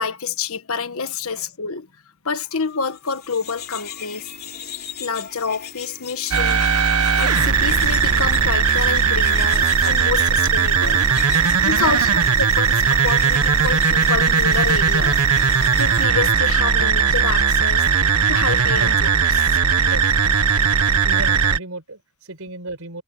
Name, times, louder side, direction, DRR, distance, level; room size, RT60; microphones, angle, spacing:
voice 1, 0.0-1.9 2.2-4.3 5.0-6.9 7.2-11.0 11.6-15.2 15.5-17.8 18.3-19.1, left 5 dB, 70° left, 1.4 m, -28 dB
sound 1, 2.8-16.1, left 8 dB, 45° left, 3.4 m, -38 dB
sound 2, 6.3-21.6, right 6 dB, 90° right, 1.5 m, -18 dB
voice 2, 11.4-12.0 13.5-13.6 18.8-19.0 19.4-20.3 21.0-23.0, right 2 dB, 70° right, 4.8 m, -36 dB
head